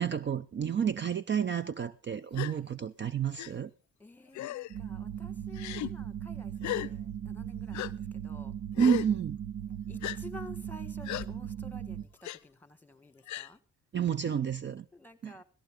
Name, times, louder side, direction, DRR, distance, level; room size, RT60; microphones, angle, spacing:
voice 1, 0.0-3.7 8.8-9.4 13.9-14.8 15.2-15.3, right 8 dB, 40° right, 0.6 m, -30 dB
Gasp, 2.3-2.5 3.4-3.5 4.3-4.7 5.5-5.9 6.6-6.9 7.7-7.9 8.7-9.1 10.0-10.2 11.0-11.3 12.2-12.4 13.3-13.5, left 15 dB, 70° left, 0.6 m, -35 dB
voice 2, 4.0-8.5 9.9-13.6 14.9-15.4, left 2 dB, 5° left, 1.7 m, -51 dB
sound 1, 4.7-12.1, right 9 dB, 80° right, 1.8 m, -38 dB
17.0 x 14.5 x 3.7 m
cardioid pair, 90°, 30 cm